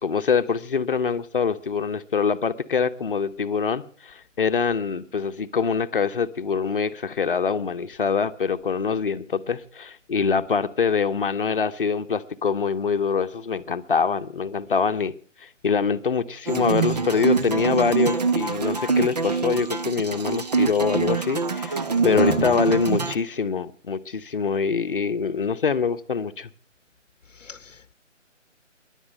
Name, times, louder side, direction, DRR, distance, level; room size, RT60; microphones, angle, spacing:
voice 1, 0.0-15.1 15.4-26.5, left 5 dB, 45° left, 0.9 m, -24 dB
sound 1, 16.5-23.1, right 5 dB, 35° right, 0.8 m, -24 dB
voice 2, 22.1-22.6 27.4-27.9, left 5 dB, 75° left, 0.9 m, -33 dB
16.5 x 11.0 x 6.4 m
figure-of-eight pair, 160°, 38 cm